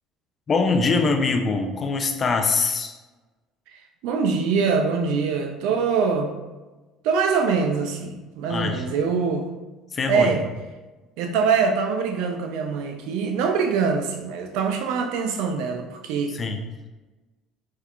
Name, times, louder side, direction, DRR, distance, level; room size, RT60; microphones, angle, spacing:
voice 1, 0.5-3.0 8.5-8.8 9.9-10.3 16.3-16.6, left 4 dB, 35° left, 5 dB, 0.5 m, -23 dB
voice 2, 4.0-6.4 7.0-9.5 10.1-10.4 11.2-16.4, right 5 dB, 75° right, 5 dB, 0.5 m, -23 dB
4.5 x 3.3 x 2.5 m, 1.2 s
supercardioid pair, 95°, 0 cm